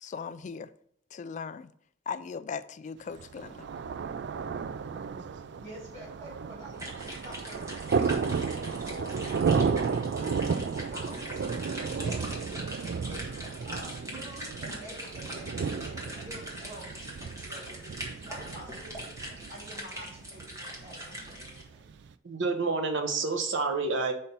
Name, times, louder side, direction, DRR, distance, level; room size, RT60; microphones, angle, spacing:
voice 1, 0.0-0.7 1.1-1.7 2.1-3.6, left 6 dB, 40° left, 0.3 m, -38 dB
Thunder, 3.2-22.1, right 5 dB, 65° right, 0.3 m, -33 dB
voice 2, 5.6-7.6 7.9-10.3 10.7-21.9, right 1 dB, 40° right, 2.9 m, -48 dB
sound 1, 6.7-21.6, equal, 15° right, 1.4 m, -42 dB
voice 3, 22.2-24.1, right 4 dB, 85° right, 0.9 m, -28 dB
5.3 x 4.3 x 5.3 m
head